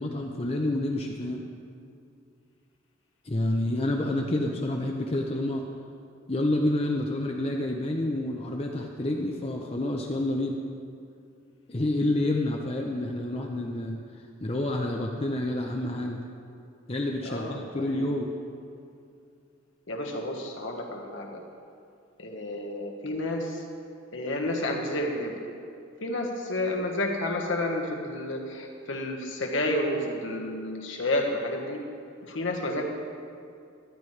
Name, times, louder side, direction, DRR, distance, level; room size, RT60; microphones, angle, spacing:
voice 1, 0.0-1.4 3.2-5.6 6.3-10.6 11.7-14.0 14.4-16.2 16.9-18.3, left 1 dB, 30° left, 1 dB, 0.6 m, -28 dB
voice 2, 17.2-18.1 19.9-21.4 22.2-23.6 24.1-25.4 26.0-31.9 32.2-32.9, left 1 dB, 70° left, 1 dB, 1.4 m, -30 dB
14.0 x 11.5 x 3.3 m, 2.4 s
head